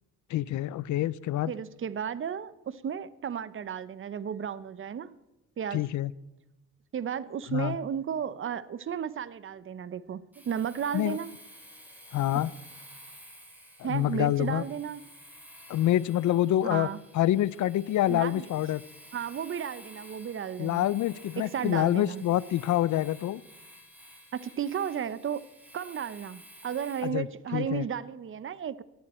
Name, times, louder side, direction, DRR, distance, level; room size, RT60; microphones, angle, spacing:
voice 1, 0.3-1.5 5.7-6.1 7.5-7.8 10.9-11.2 12.1-12.5 13.8-14.6 15.7-16.9 17.1-18.8 20.6-23.4 27.0-27.3 27.5-27.9, left 13 dB, 65° left, 0.7 m, -26 dB
voice 2, 1.5-5.2 5.6-5.8 6.9-11.3 13.8-15.0 16.6-17.0 18.1-18.5 19.1-20.9 21.4-22.2 24.3-25.5 25.7-28.8, right 8 dB, 40° right, 0.9 m, -34 dB
Domestic sounds home sounds, 10.3-27.1, equal, 5° right, 7.3 m, -52 dB
19.5 x 13.0 x 4.4 m
cardioid pair, 90°, 31 cm